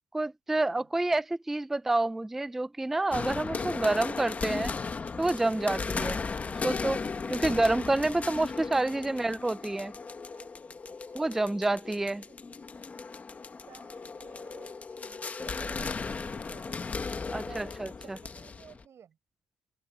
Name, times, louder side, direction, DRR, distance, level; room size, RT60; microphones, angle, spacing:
voice 1, 0.1-4.7 5.2-6.2 6.5-7.0 7.3-9.9 11.1-12.2 17.3-18.2, right 2 dB, 5° right, 0.3 m, -28 dB
sound 1, 3.1-18.8, left 4 dB, 20° left, 1.0 m, -36 dB
voice 2, 9.9-11.3 12.1-12.4 13.6-16.8 17.4-19.2, right 8 dB, 35° right, 4.8 m, -54 dB
open air
cardioid pair, 175°, 8 cm